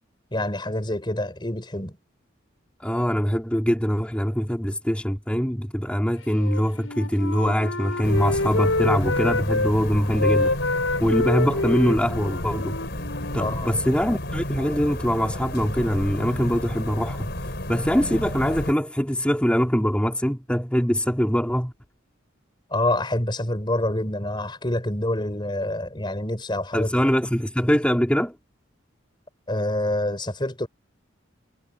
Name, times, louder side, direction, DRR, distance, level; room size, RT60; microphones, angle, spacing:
voice 1, 0.3-2.0 13.4-13.7 22.7-26.9 29.5-30.7, left 1 dB, 25° left, 4.7 m, -26 dB
voice 2, 2.8-10.5 11.0-12.7 13.3-21.7 26.7-28.3, equal, 5° left, 2.9 m, -23 dB
Wind instrument woodwind instrument, 6.4-9.7 10.1-14.0, left 2 dB, 85° left, 7.1 m, -27 dB
sound 1, 8.0-18.7, left 1 dB, 55° left, 5.0 m, -32 dB
head